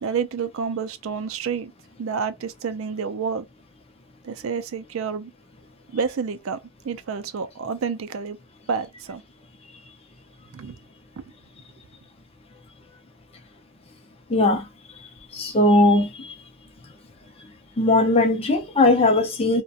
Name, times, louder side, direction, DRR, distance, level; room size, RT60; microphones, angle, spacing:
voice 1, 0.0-1.7 2.0-3.5 4.2-5.3 5.9-8.4 8.7-9.2 10.5-10.8, right 6 dB, 70° right, 0.4 m, -29 dB
voice 2, 14.3-14.6 15.3-16.1 17.8-19.6, left 2 dB, 25° left, 0.5 m, -18 dB
2.4 x 2.1 x 2.6 m
head